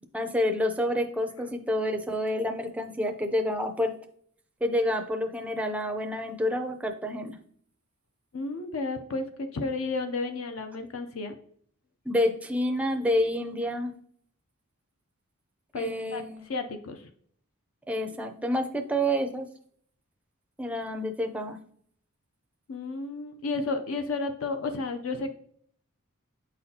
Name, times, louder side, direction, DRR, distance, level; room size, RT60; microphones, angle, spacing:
voice 1, 0.1-3.9 4.6-7.4 12.1-13.9 15.7-16.4 17.9-19.5 20.6-21.6, equal, 5° right, 5 dB, 0.4 m, -28 dB
voice 2, 8.3-11.3 15.7-17.1 22.7-25.3, left 3 dB, 65° left, 6 dB, 0.5 m, -32 dB
8.4 x 4.1 x 2.7 m, 0.62 s
head